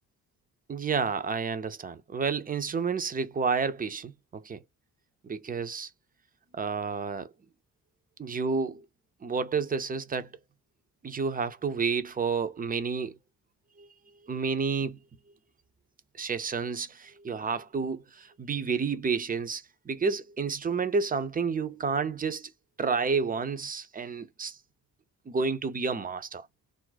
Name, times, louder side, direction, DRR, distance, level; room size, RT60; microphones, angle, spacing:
voice 1, 0.7-4.6 5.2-5.9 6.5-7.3 8.2-8.9 9.2-10.3 11.0-13.2 13.8-13.9 14.3-15.0 16.2-22.5 22.8-24.6 25.3-26.5, right 5 dB, 20° right, 0.4 m, -30 dB
2.4 x 2.1 x 3.9 m
hypercardioid pair, 40°, 47 cm